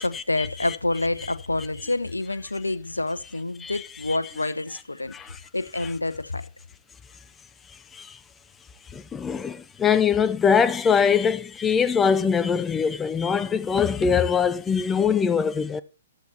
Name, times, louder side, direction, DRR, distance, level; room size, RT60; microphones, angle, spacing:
voice 1, 0.0-5.1 5.5-6.5, left 2 dB, 90° left, 1.0 m, -28 dB
voice 2, 8.9-15.8, left 6 dB, 15° left, 0.7 m, -22 dB
14.0 x 10.5 x 2.9 m
figure-of-eight pair, 120°, 0 cm